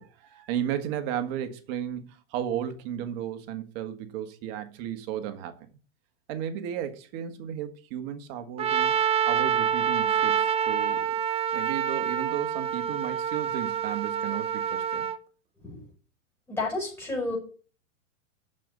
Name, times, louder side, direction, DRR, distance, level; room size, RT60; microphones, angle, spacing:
voice 1, 0.0-5.6 6.3-8.9 9.3-11.2 11.5-15.1, right 10 dB, 50° right, 1.7 m, -34 dB
Trumpet, 8.6-15.2, right 8 dB, 15° right, 0.5 m, -27 dB
voice 2, 16.5-17.4, left 2 dB, 5° left, 6.3 m, -31 dB
7.4 x 6.8 x 7.2 m
hypercardioid pair, 125°, 39 cm